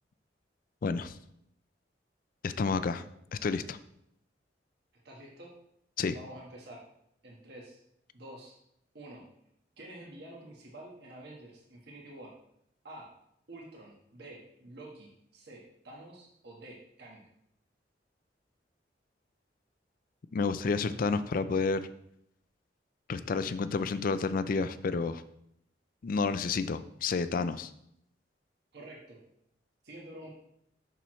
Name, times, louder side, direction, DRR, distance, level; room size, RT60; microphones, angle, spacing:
voice 1, 0.8-1.1 2.4-3.0 3.3-3.8 6.0-6.1 20.3-21.8 23.1-25.2 26.0-27.7, left 4 dB, 50° left, 13 dB, 0.4 m, -30 dB
voice 2, 5.0-5.5 6.1-6.8 7.2-7.8 8.1-8.6 8.9-9.3 9.8-12.3 12.8-13.1 13.5-17.2 28.7-29.2 29.8-30.3, right 1 dB, 65° right, -2 dB, 1.5 m, -48 dB
6.9 x 6.1 x 3.1 m, 0.75 s
head